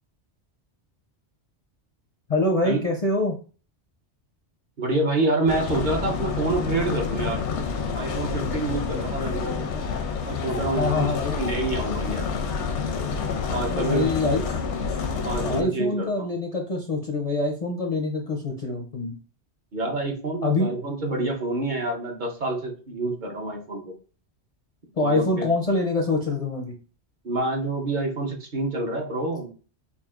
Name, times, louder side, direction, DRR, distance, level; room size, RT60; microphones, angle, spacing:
voice 1, 2.3-3.4 10.8-11.3 13.6-14.5 15.4-19.1 20.4-20.7 25.0-26.7, left 2 dB, 45° left, 0 dB, 0.5 m, -25 dB
voice 2, 4.8-7.4 7.9-9.7 10.2-12.4 13.5-14.1 15.0-16.3 19.7-23.9 25.0-25.5 27.2-29.5, right 2 dB, 45° right, 1 dB, 0.9 m, -27 dB
sound 1, 5.5-15.6, left 5 dB, 80° left, 0.9 m, -28 dB
5.1 x 2.6 x 2.4 m, 0.37 s
omnidirectional pair, 1.2 m